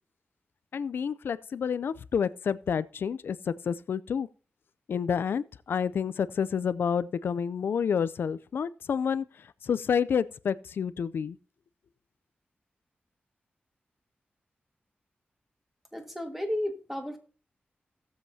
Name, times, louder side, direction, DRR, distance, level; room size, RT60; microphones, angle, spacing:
voice 1, 0.7-4.3 4.9-9.3 9.6-11.4, left 7 dB, 90° left, 0.4 m, -29 dB
voice 2, 15.9-17.2, left 1 dB, 5° right, 1.8 m, -33 dB
18.0 x 7.5 x 2.7 m
wide cardioid pair, 115°, 4 cm